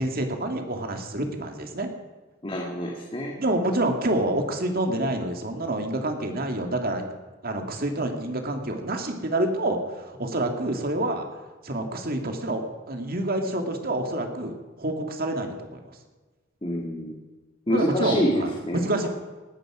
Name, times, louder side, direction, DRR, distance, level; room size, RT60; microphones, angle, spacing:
voice 1, 0.0-1.9 3.4-7.0 7.4-11.3 11.6-15.8 17.7-19.1, right 1 dB, 50° right, 4 dB, 2.3 m, -27 dB
voice 2, 2.4-3.4 16.6-17.2 17.7-19.1, equal, 25° left, 0 dB, 2.1 m, -27 dB
19.0 x 14.0 x 5.0 m, 1.3 s
head